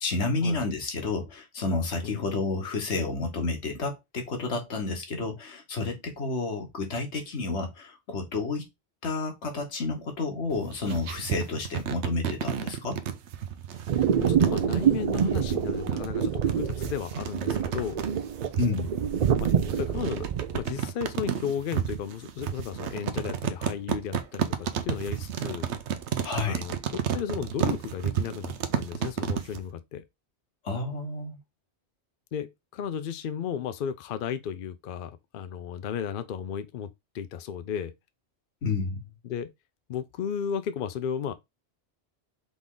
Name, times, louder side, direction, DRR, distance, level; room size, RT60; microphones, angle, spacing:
voice 1, 0.0-8.6 9.0-13.0 18.6-18.9 26.2-26.6 30.6-31.4 38.6-39.0, left 3 dB, 85° left, 1.5 m, -30 dB
sound 1, 10.5-29.6, right 9 dB, 90° right, 1.0 m, -32 dB
voice 2, 13.8-18.0 19.4-25.7 26.5-30.0 32.3-37.9 39.2-39.5 39.9-41.3, left 8 dB, 60° left, 0.6 m, -34 dB
sound 2, 13.9-20.6, right 8 dB, 55° right, 0.5 m, -26 dB
4.0 x 3.6 x 3.7 m
omnidirectional pair, 1.1 m